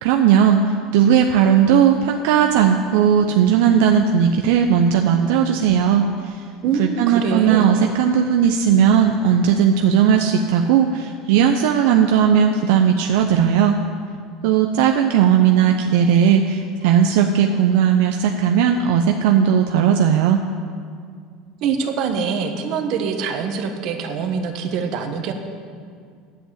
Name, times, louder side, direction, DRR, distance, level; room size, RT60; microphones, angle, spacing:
voice 1, 0.0-6.4 6.8-13.8 14.4-20.4, right 8 dB, 80° right, 4 dB, 0.7 m, -17 dB
voice 2, 6.6-7.7 21.6-25.3, right 6 dB, 55° right, 6 dB, 1.3 m, -24 dB
10.5 x 8.0 x 8.5 m, 2.1 s
supercardioid pair, 135°, 0 cm